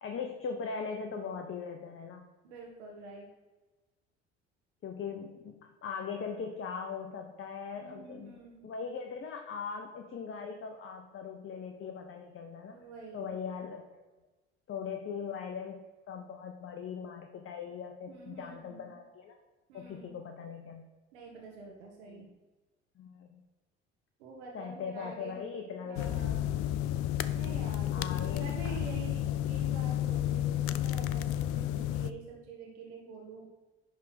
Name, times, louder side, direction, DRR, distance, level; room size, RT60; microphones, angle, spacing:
voice 1, 0.0-2.3 4.8-12.8 13.1-14.0 14.7-19.4 19.7-20.9 22.1-22.3 23.0-23.4 24.5-26.4 27.9-28.8, left 6 dB, 40° left, 4 dB, 1.0 m, -40 dB
voice 2, 2.4-3.3 7.8-8.6 12.7-13.3 18.1-18.9 19.7-20.2 21.1-22.3 24.2-25.4 25.8-26.5 27.3-33.5, right 4 dB, 80° right, -1 dB, 1.4 m, -47 dB
sound 1, 26.0-32.1, left 12 dB, 65° left, 0.5 m, -31 dB
10.5 x 3.7 x 6.0 m, 1.2 s
hypercardioid pair, 60°, 33 cm